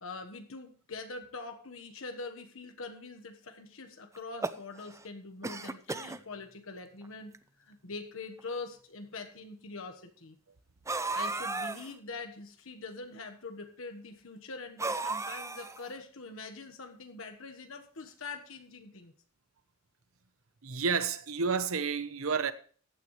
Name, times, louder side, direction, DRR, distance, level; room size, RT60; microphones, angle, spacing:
voice 1, 0.0-10.4 11.1-19.1, left 3 dB, 70° left, 1.4 m, -44 dB
sound 1, 4.2-5.0 5.4-6.2 7.0-7.1 7.3-7.4 8.4-8.5 10.9-11.9 14.8-15.9, right 3 dB, 15° right, 0.5 m, -34 dB
voice 2, 20.6-22.5, right 5 dB, 75° right, 0.9 m, -30 dB
15.0 x 9.3 x 3.2 m
head